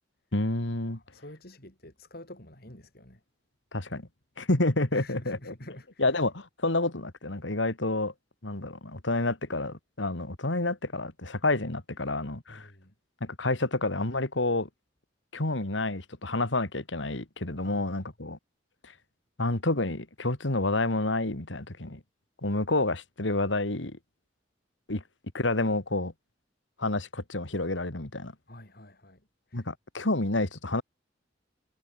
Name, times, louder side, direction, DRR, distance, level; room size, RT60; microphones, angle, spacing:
voice 1, 0.3-1.0 3.7-4.1 4.4-5.5 6.0-8.1 8.4-12.7 13.2-14.7 15.3-18.4 19.4-22.0 22.4-24.0 24.9-25.0 25.3-26.1 26.8-28.3 29.5-30.8, left 2 dB, 80° left, 2.6 m, -29 dB
voice 2, 0.9-3.2 4.9-6.0 12.5-12.9 17.6-18.0 28.5-29.2 29.5-29.7, left 1 dB, 55° left, 7.5 m, -48 dB
head